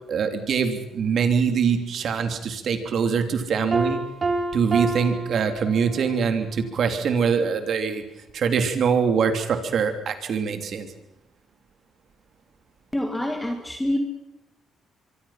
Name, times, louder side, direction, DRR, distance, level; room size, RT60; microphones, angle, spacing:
voice 1, 0.1-4.0 4.5-8.0 8.3-10.9, right 6 dB, 60° right, 7 dB, 3.3 m, -23 dB
Piano, 3.7-6.3, right 2 dB, 35° right, 3.8 m, -28 dB
voice 2, 12.9-14.0, left 1 dB, 10° left, 3 dB, 2.7 m, -26 dB
25.0 x 24.5 x 6.0 m, 0.86 s
cardioid pair, 90°, 0 cm